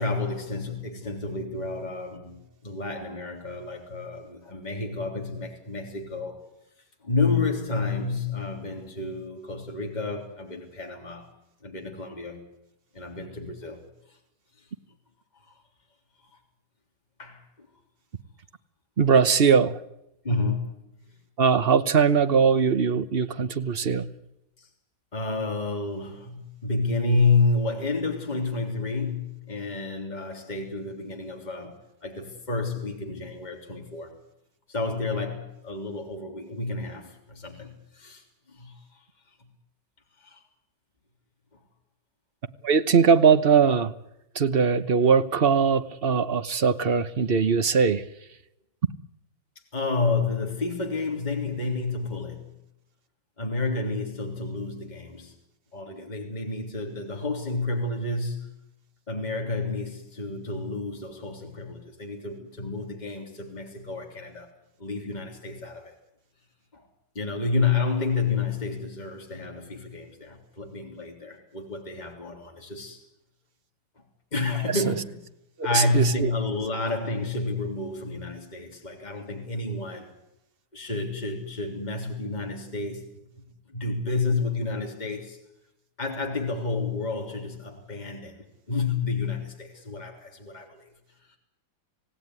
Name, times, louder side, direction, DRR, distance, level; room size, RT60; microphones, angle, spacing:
voice 1, 0.0-6.4 7.0-11.3 11.6-12.4 12.9-13.8 15.5-15.6 17.2-17.7 20.2-20.8 24.6-24.7 25.1-34.2 34.7-39.0 40.2-40.4 49.7-52.5 53.4-55.3 55.7-58.5 59.1-64.5 64.8-65.9 66.7-66.9 67.2-73.0 74.0-74.1 74.3-75.2 75.6-80.2 80.7-83.0 83.7-85.4 86.0-90.9, left 3 dB, 20° left, 3.6 m, -30 dB
voice 2, 19.0-19.8 21.4-24.1 42.6-43.9 44.3-48.0 75.7-76.3, right 6 dB, 40° right, 0.9 m, -21 dB
26.5 x 17.0 x 9.7 m
omnidirectional pair, 2.2 m